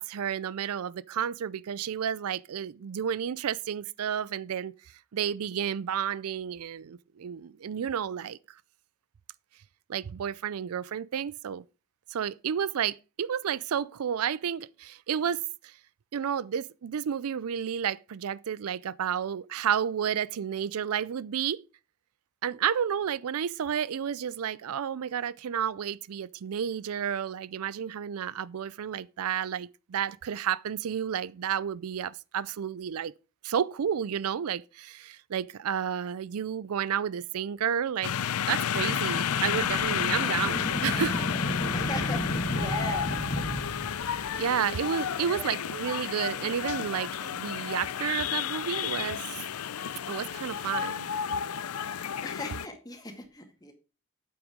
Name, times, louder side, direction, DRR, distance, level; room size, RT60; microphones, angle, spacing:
voice 1, 0.0-4.7 5.1-8.6 9.9-11.6 12.1-15.7 16.1-21.6 22.4-33.1 33.4-38.1 38.5-41.2 44.4-49.4 50.1-51.1, right 8 dB, 75° right, 0.4 m, -31 dB
sound 1, 38.0-52.7, left 8 dB, 80° left, 0.5 m, -31 dB
sound 2, 38.7-44.6, equal, 35° left, 1.3 m, -33 dB
voice 2, 41.7-43.1 45.2-45.6 52.2-53.7, left 1 dB, 15° left, 1.9 m, -39 dB
8.9 x 7.9 x 5.0 m
head